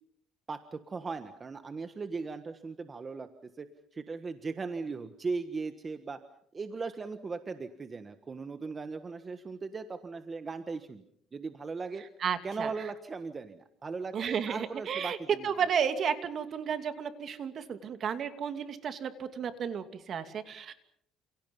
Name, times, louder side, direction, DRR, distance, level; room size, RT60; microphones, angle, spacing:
voice 1, 0.5-3.3 3.6-6.2 6.5-11.0 11.3-12.0 12.4-15.5, right 4 dB, 25° right, 9 dB, 1.5 m, -38 dB
voice 2, 12.2-12.7 14.1-20.7, right 7 dB, 45° right, 9 dB, 2.7 m, -32 dB
29.5 x 28.5 x 5.5 m, 0.69 s
cardioid pair, 135°, 0 cm